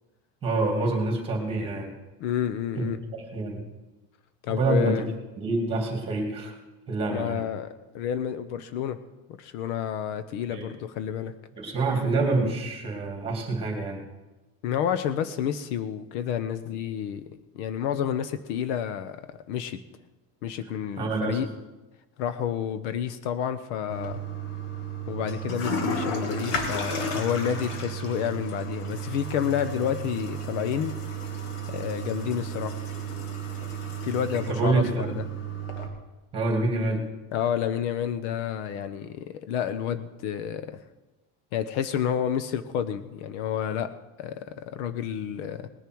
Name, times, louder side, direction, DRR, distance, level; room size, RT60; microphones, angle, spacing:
voice 1, 0.4-1.9 2.8-2.9 3.2-3.6 4.5-5.0 5.4-6.6 6.9-7.4 10.5-10.6 11.6-14.0 21.0-21.4 34.5-34.9 36.3-37.1, right 3 dB, 15° right, 2 dB, 2.6 m, -26 dB
voice 2, 2.2-3.0 4.4-5.0 7.1-9.0 9.4-11.3 14.6-17.2 17.5-19.2 19.5-19.8 20.4-21.5 22.2-24.2 25.1-30.9 31.7-32.8 34.0-35.2 37.3-40.8 41.5-43.9 44.2-45.7, left 9 dB, 65° left, 12 dB, 0.9 m, -30 dB
Toilet flush, 23.9-35.9, right 3 dB, 80° left, 2.4 m, -33 dB
19.5 x 10.5 x 4.7 m, 1.1 s
cardioid pair, 175°, 38 cm